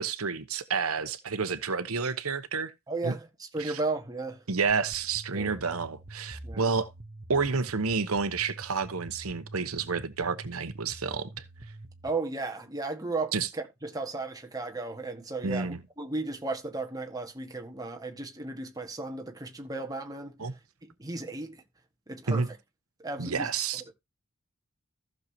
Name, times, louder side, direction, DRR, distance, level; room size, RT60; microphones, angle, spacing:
voice 1, 0.0-2.7 3.0-3.1 3.6-3.8 4.5-6.9 7.3-11.3 13.3-13.5 15.4-15.8 20.4-20.5 22.3-22.5 23.2-23.8, right 5 dB, 85° right, 1.0 m, -30 dB
voice 2, 2.9-4.4 5.3-5.6 6.4-6.7 12.0-20.5 20.8-21.6 22.1-22.6 23.0-23.5 23.9-24.0, right 3 dB, 15° right, 1.6 m, -35 dB
sound 1, 4.7-12.1, right 1 dB, 35° right, 1.1 m, -46 dB
15.0 x 6.6 x 2.9 m
head